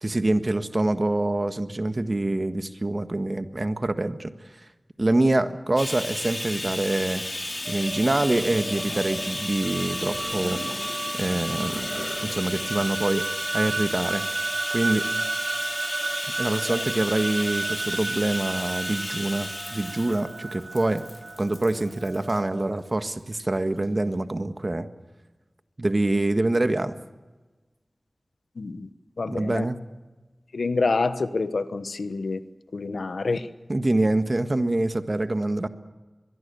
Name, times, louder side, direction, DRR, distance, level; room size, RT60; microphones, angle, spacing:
voice 1, 0.0-4.3 5.0-7.2 7.7-10.6 11.2-12.0 12.2-13.2 13.5-14.2 14.7-15.1 16.4-21.0 21.4-24.9 25.8-27.0 29.3-29.8 33.7-35.7, right 2 dB, 40° right, 9 dB, 1.6 m, -25 dB
Bathtub (filling or washing), 5.8-22.4 23.3-23.5 23.8-23.9, left 1 dB, 35° left, 2.8 m, -34 dB
sound 1, 6.7-12.7, equal, ahead, 6.3 m, -41 dB
sound 2, 7.6-22.8, right 3 dB, 75° right, 1.3 m, -34 dB
voice 2, 28.6-28.9 29.2-29.7 30.5-32.4 32.7-33.5, left 3 dB, 90° left, 12 dB, 1.2 m, -27 dB
23.5 x 22.5 x 7.0 m, 1.2 s
wide cardioid pair, 55°, 0 cm